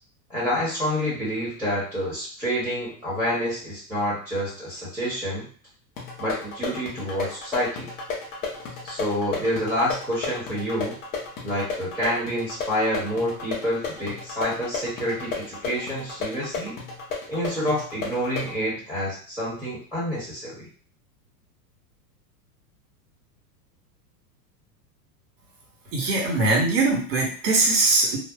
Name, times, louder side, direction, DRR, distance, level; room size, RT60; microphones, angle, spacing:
voice 1, 0.3-5.5 6.2-7.9 8.8-11.0 11.4-16.8 17.3-20.7, equal, 5° right, -8 dB, 1.1 m, -28 dB
sound 1, 6.0-18.6, left 4 dB, 20° left, 0.3 m, -34 dB
voice 2, 25.9-28.2, right 2 dB, 70° right, -2 dB, 1.4 m, -21 dB
2.6 x 2.0 x 2.3 m, 0.42 s
hypercardioid pair, 115°, 49 cm